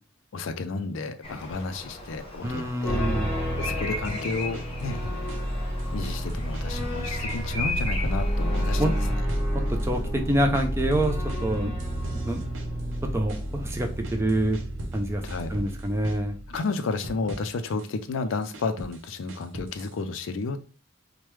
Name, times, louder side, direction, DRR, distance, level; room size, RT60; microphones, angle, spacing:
voice 1, 0.3-3.1 3.6-5.0 5.9-9.2 15.2-15.5 16.5-20.7, left 3 dB, 75° left, 9 dB, 0.4 m, -32 dB
Bird vocalization bird call bird song, 1.2-9.1, left 2 dB, 30° left, 0.8 m, -37 dB
voice 2, 2.4-3.3 8.8-8.9 9.5-11.8 12.1-12.4 13.0-14.6 14.9-15.2 15.5-16.4, right 1 dB, 15° right, 4 dB, 0.4 m, -26 dB
sound 1, 2.8-16.6, equal, 10° left, 1.1 m, -30 dB
sound 2, 4.0-5.5 5.8-7.0 7.3-8.2 8.5-10.0 10.3-15.0 15.3-16.2 16.5-17.9 18.3-20.0, equal, 70° right, 0.6 m, -41 dB
3.1 x 2.2 x 3.2 m, 0.35 s
head